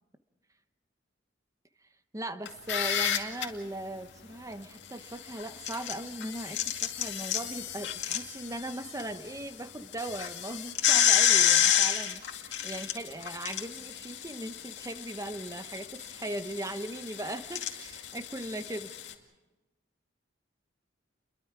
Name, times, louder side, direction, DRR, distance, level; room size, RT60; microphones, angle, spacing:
voice 1, 2.1-18.9, right 1 dB, 15° right, 9 dB, 1.1 m, -39 dB
sound 1, 2.5-3.4 5.4-9.0 9.4-9.5 9.9-19.1, left 10 dB, 65° left, 2.3 m, -29 dB
30.0 x 23.0 x 4.8 m, 1.1 s
head